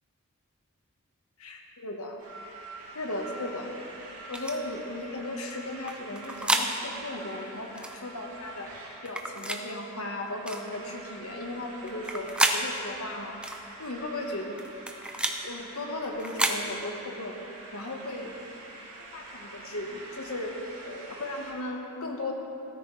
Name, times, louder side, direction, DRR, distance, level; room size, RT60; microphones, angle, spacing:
voice 1, 1.4-2.2 2.9-3.7 4.3-8.7 9.0-13.4 13.8-14.6 15.4-17.4 17.7-18.3 19.0-20.5 20.8-22.3, left 1 dB, 85° left, 2 dB, 1.4 m, -36 dB
sound 1, 2.2-21.5, right 2 dB, 70° right, 2.8 m, -46 dB
sound 2, 4.3-4.6 5.9-6.7 7.8-8.0 9.1-9.6 10.5-10.7 11.9-12.6 13.4-13.6 14.6-15.4 16.2-16.6, right 1 dB, 5° right, 0.5 m, -29 dB
14.5 x 13.0 x 3.3 m, 3.0 s
head